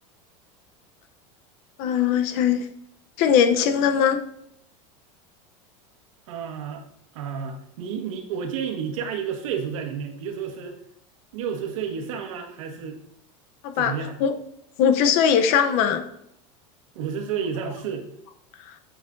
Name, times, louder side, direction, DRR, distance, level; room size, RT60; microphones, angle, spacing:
voice 1, 1.8-2.7 3.2-4.2 13.6-14.3 14.8-16.0, left 8 dB, 40° left, 9 dB, 0.7 m, -20 dB
voice 2, 6.3-6.8 7.1-10.8 11.3-13.0 13.7-14.2 16.9-18.1, right 7 dB, 85° right, 3 dB, 1.5 m, -31 dB
9.3 x 7.6 x 2.6 m, 0.74 s
supercardioid pair, 180°, 17 cm